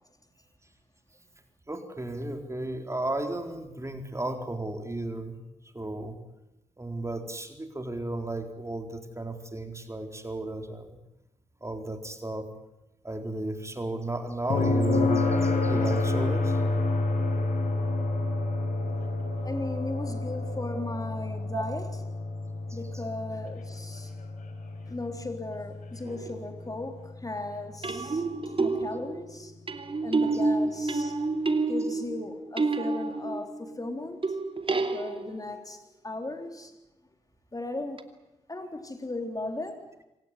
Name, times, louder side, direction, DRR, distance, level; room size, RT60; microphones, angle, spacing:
voice 1, 1.7-5.4 5.7-6.2 6.8-11.0 11.6-12.5 13.0-16.6 21.5-21.6 22.7-22.8 30.3-30.4, right 2 dB, 20° right, 6 dB, 4.2 m, -34 dB
sound 1, 14.5-28.4 30.6-30.7, left 2 dB, 70° left, 5.1 m, -29 dB
voice 2, 19.4-21.9 22.7-24.1 24.9-28.2 28.6-29.5 30.0-31.2 31.7-34.3 34.9-36.7 37.5-38.0 38.5-39.9, left 2 dB, 25° left, 6 dB, 3.8 m, -36 dB
sound 2, 26.1-26.4 27.8-33.7 34.2-35.6 38.0-38.1, right 3 dB, 40° right, 2.7 m, -29 dB
26.5 x 18.0 x 9.9 m, 0.95 s
supercardioid pair, 40°, 14 cm